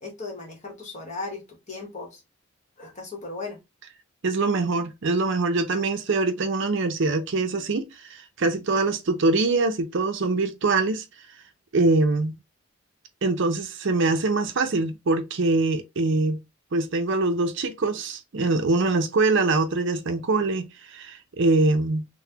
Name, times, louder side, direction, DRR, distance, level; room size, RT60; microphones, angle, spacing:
voice 1, 0.0-2.2 2.8-3.6, left 3 dB, 35° left, 1.0 m, -36 dB
voice 2, 4.2-11.1 11.7-12.4 13.2-16.4 16.7-22.1, right 3 dB, 55° right, 0.5 m, -23 dB
3.9 x 2.1 x 2.7 m
head